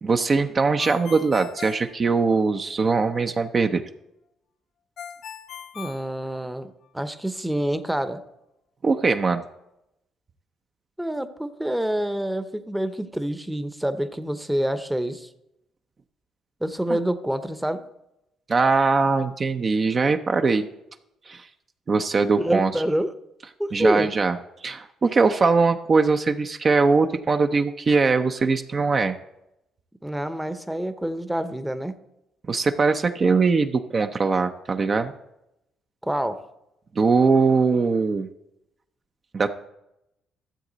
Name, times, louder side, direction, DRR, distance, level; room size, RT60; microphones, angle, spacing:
voice 1, 0.0-3.8 8.8-9.4 18.5-20.7 21.3-21.4 21.9-22.7 23.7-24.4 24.6-29.2 32.5-35.1 37.0-38.3 39.3-39.5, right 4 dB, 40° right, 6 dB, 0.6 m, -21 dB
Ringtone, 0.8-2.7 5.0-6.9, left 8 dB, 65° left, 0.5 m, -40 dB
voice 2, 5.7-6.7 6.9-8.2 11.0-15.3 16.6-17.8 22.4-23.1 23.6-24.1 30.0-32.0 36.0-36.4, right 1 dB, 5° right, 10 dB, 0.8 m, -27 dB
13.0 x 7.2 x 4.0 m, 0.87 s
supercardioid pair, 65°, 0 cm